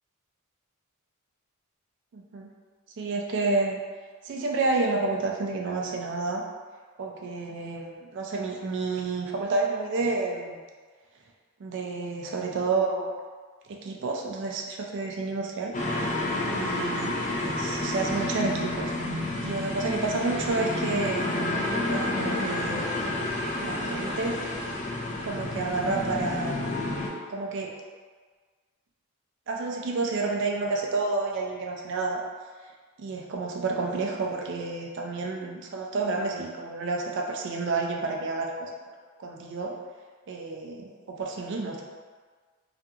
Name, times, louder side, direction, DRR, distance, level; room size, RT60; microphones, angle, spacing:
voice 1, 2.1-2.5 3.0-3.8 4.2-6.4 7.0-10.6 11.6-13.1 13.7-15.7 16.4-18.9 19.4-22.9 23.6-24.4 25.2-26.8 27.3-27.7 29.5-32.2 33.0-38.7 39.2-39.7 40.3-41.8, right 3 dB, 55° right, 0 dB, 0.3 m, -30 dB
sound 1, 15.7-27.1, left 2 dB, 35° left, 0.3 m, -30 dB
2.7 x 2.5 x 2.3 m, 1.5 s
head